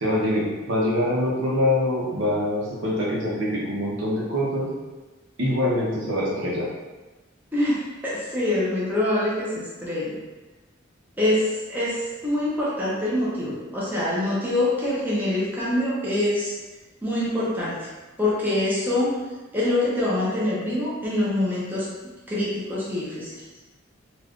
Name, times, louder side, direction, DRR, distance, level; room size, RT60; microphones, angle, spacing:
voice 1, 0.0-4.7 5.4-6.7, left 1 dB, 70° right, -5 dB, 0.8 m, -24 dB
voice 2, 7.5-10.1 11.2-12.0 12.2-16.5 17.0-17.9 18.2-19.1 19.5-21.9 22.3-23.3, left 1 dB, 10° right, -8 dB, 0.7 m, -25 dB
2.5 x 2.4 x 3.5 m, 1.2 s
head